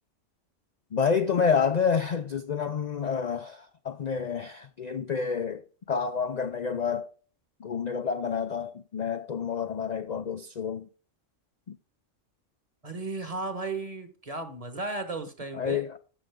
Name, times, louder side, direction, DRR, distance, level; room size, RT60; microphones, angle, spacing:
voice 1, 0.9-5.6 5.9-7.1 7.6-10.9 11.7-11.8 15.5-16.0, left 6 dB, 50° left, 0.5 m, -28 dB
voice 2, 12.8-15.9, right 3 dB, 30° right, 1.4 m, -35 dB
13.5 x 6.4 x 3.6 m
omnidirectional pair, 1.3 m